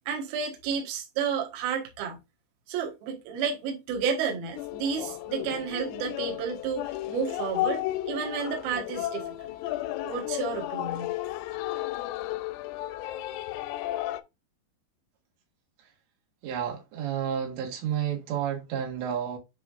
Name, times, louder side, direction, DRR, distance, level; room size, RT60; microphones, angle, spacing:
voice 1, 0.1-2.2 2.7-9.3 10.0-11.1, right 6 dB, 65° right, 3.0 m, -31 dB
sound 1, 4.6-14.2, left 15 dB, 85° left, 2.8 m, -33 dB
voice 2, 16.4-19.4, right 9 dB, 85° right, 4.1 m, -31 dB
10.5 x 3.8 x 2.5 m
omnidirectional pair, 5.0 m